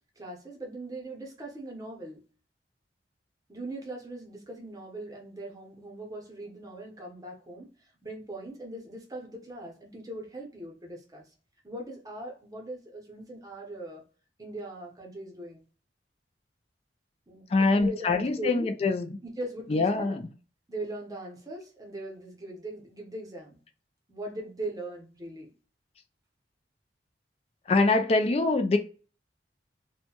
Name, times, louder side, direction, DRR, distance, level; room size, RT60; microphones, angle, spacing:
voice 1, 0.2-2.2 3.5-7.7 8.0-11.2 11.6-14.0 14.4-15.6 17.3-18.7 19.2-20.1 20.7-23.6 24.1-25.5, right 1 dB, 20° right, 0.7 m, -40 dB
voice 2, 17.5-19.1 19.7-20.2 27.7-28.8, left 3 dB, 35° left, 0.3 m, -24 dB
2.7 x 2.2 x 2.8 m
head